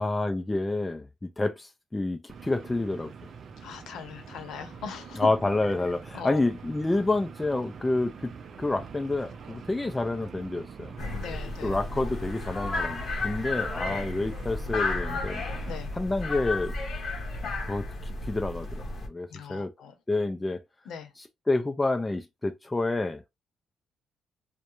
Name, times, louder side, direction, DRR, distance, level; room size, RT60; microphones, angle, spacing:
voice 1, 0.0-3.1 5.1-10.9 11.6-15.4 16.0-16.7 17.7-19.7 20.1-20.6 21.5-23.2, left 2 dB, 15° left, 0.4 m, -29 dB
sound 1, 2.3-15.8, right 6 dB, 50° right, 0.4 m, -45 dB
voice 2, 3.6-5.3 6.1-6.4 11.2-11.8 13.9-14.0 15.7-15.9 19.3-19.9 20.8-21.1, left 7 dB, 80° left, 0.7 m, -39 dB
sound 2, 11.0-19.1, left 2 dB, 40° left, 0.8 m, -33 dB
2.3 x 2.1 x 3.0 m
cardioid pair, 120°, 0 cm